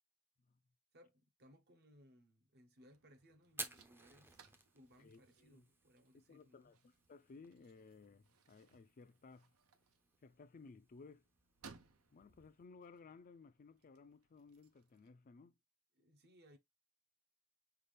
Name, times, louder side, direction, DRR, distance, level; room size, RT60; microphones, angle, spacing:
voice 1, 0.9-6.7 15.9-16.6, equal, 50° right, 0.9 m, -66 dB
sound 1, 2.8-15.1, right 4 dB, 75° right, 0.7 m, -66 dB
Fire, 3.5-12.7, right 2 dB, 10° right, 0.5 m, -56 dB
voice 2, 5.0-5.7 6.1-9.5 10.2-11.3 12.1-15.6, left 4 dB, 40° left, 0.4 m, -59 dB
5.6 x 2.4 x 3.3 m
head